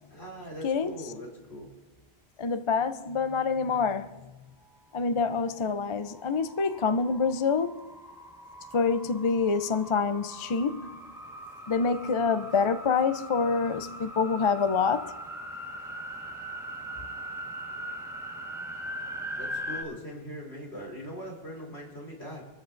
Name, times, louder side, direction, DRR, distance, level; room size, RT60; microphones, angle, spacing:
voice 1, 0.1-1.7 19.4-22.5, equal, 75° left, 3.9 m, -41 dB
voice 2, 0.6-0.9 2.4-4.2 4.9-7.9 8.7-11.0 11.7-15.1, left 5 dB, 40° left, 0.5 m, -26 dB
sound 1, 5.4-19.8, equal, 5° right, 1.3 m, -41 dB
26.5 x 13.5 x 2.6 m
omnidirectional pair, 1.1 m